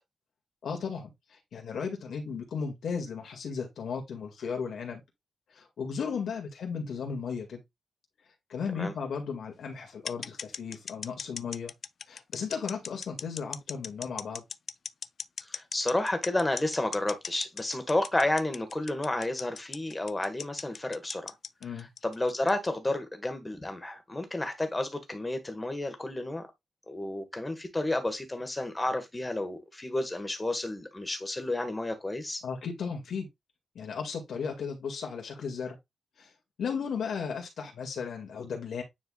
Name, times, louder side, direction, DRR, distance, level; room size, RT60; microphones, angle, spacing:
voice 1, 0.6-5.0 5.5-7.6 8.5-11.7 12.1-14.4 21.6-21.9 32.4-33.3 33.8-35.8 36.2-36.3 36.6-38.8, left 6 dB, 75° left, 2.1 m, -35 dB
sound 1, 10.1-22.7, left 6 dB, 50° left, 0.3 m, -38 dB
voice 2, 15.5-21.3 21.8-26.4 26.9-32.4, left 2 dB, 15° left, 1.5 m, -31 dB
9.4 x 4.6 x 2.4 m
wide cardioid pair, 160°, 0 cm